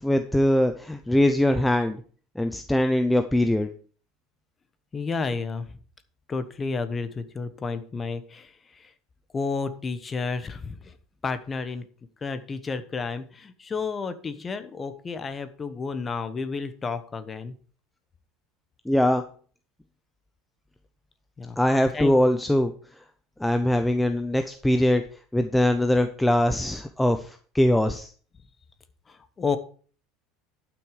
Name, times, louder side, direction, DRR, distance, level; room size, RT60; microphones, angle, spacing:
voice 1, 0.0-2.0 2.4-3.7 18.9-19.2 21.6-22.7 23.4-25.0 25.3-28.1, left 1 dB, 5° left, 7 dB, 0.6 m, -22 dB
voice 2, 4.9-5.7 6.3-8.9 9.3-10.9 11.2-11.8 12.2-17.5 21.4-21.6 21.9-22.2 29.1-29.6, left 4 dB, 20° left, 11 dB, 1.0 m, -31 dB
11.5 x 6.2 x 4.9 m, 0.43 s
supercardioid pair, 145°, 0 cm